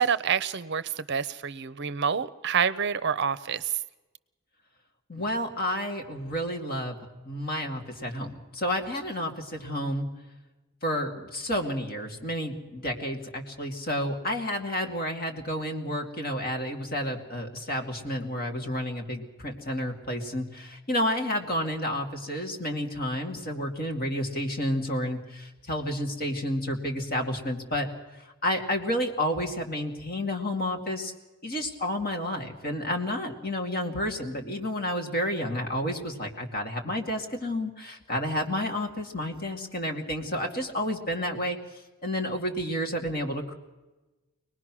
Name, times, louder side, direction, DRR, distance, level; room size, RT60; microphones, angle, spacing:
voice 1, 0.0-3.8, right 7 dB, 55° right, 16 dB, 0.6 m, -27 dB
voice 2, 5.1-7.0 7.3-10.1 10.8-27.9 28.2-31.1 31.4-41.6 42.0-43.5, left 1 dB, 45° left, 3 dB, 2.4 m, -30 dB
24.5 x 19.5 x 6.2 m, 1.1 s
head